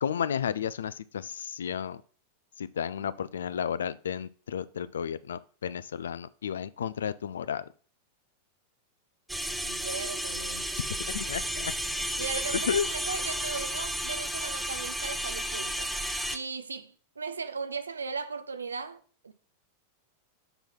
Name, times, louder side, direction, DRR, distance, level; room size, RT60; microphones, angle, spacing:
voice 1, 0.0-2.0 2.6-7.6 11.1-11.7 12.5-12.9, left 8 dB, 65° left, 0.4 m, -32 dB
sound 1, 9.3-16.4, equal, 5° right, 0.7 m, -32 dB
voice 2, 9.6-10.7 12.2-15.9 16.3-19.3, right 5 dB, 75° right, 0.7 m, -37 dB
6.9 x 4.4 x 5.4 m
figure-of-eight pair, 90°, 0 cm